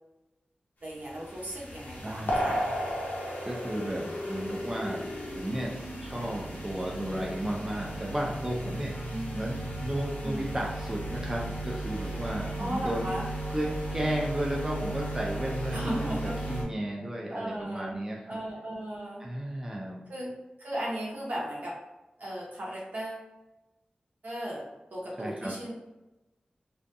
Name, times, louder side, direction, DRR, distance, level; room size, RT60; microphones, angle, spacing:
voice 1, 0.8-2.6 9.1-9.4 10.2-10.4 12.6-13.3 15.7-16.3 17.3-18.0 18.3-19.2 20.1-20.3 20.6-21.7 22.2-23.3 24.2-24.6 24.9-25.7, right 1 dB, 70° right, -5 dB, 0.8 m, -36 dB
sound 1, 1.1-16.6, right 1 dB, 85° left, 0.5 m, -35 dB
voice 2, 2.0-2.4 3.4-5.0 5.3-5.7 6.0-8.9 9.3-13.1 13.5-18.4 19.2-20.0 25.2-25.5, right 1 dB, 15° right, -2 dB, 0.4 m, -33 dB
2.4 x 2.2 x 2.6 m, 1.0 s
wide cardioid pair, 80°, 3 cm